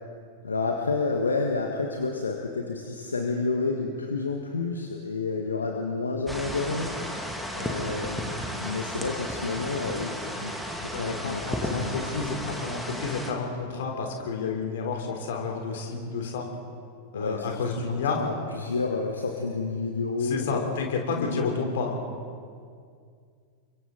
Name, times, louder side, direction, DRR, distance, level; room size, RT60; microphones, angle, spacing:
voice 1, 0.4-10.5 10.8-12.1 17.1-17.8 18.1-20.8 21.2-21.5, left 3 dB, 75° left, 2 dB, 1.7 m, -30 dB
sound 1, 6.3-13.3, equal, ahead, 2.5 m, -34 dB
voice 2, 10.9-16.5 17.1-18.2 20.2-22.0, left 4 dB, 55° left, 2 dB, 3.8 m, -30 dB
30.0 x 23.5 x 4.1 m, 2.2 s
figure-of-eight pair, 90°, 0 cm